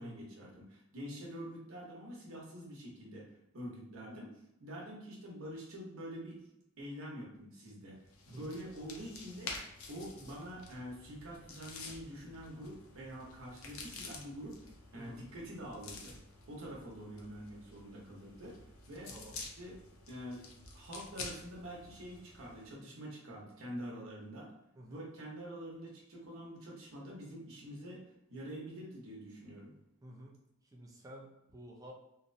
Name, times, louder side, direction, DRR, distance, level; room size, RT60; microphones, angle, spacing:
voice 1, 0.0-4.3 4.6-6.4 6.8-8.0 8.3-9.5 9.9-14.6 14.9-16.1 16.5-18.6 18.9-19.1 19.4-19.8 20.1-20.4 20.7-24.5 24.9-28.0 28.3-29.7, equal, 70° right, -3 dB, 0.9 m, -46 dB
voice 2, 4.0-4.3 8.3-8.6 14.9-15.2 19.1-19.4 24.7-25.1 30.0-31.9, right 1 dB, 15° right, -1 dB, 0.4 m, -52 dB
sound 1, 8.0-22.7, left 3 dB, 90° left, 0.5 m, -50 dB
2.8 x 2.1 x 2.6 m, 0.83 s
head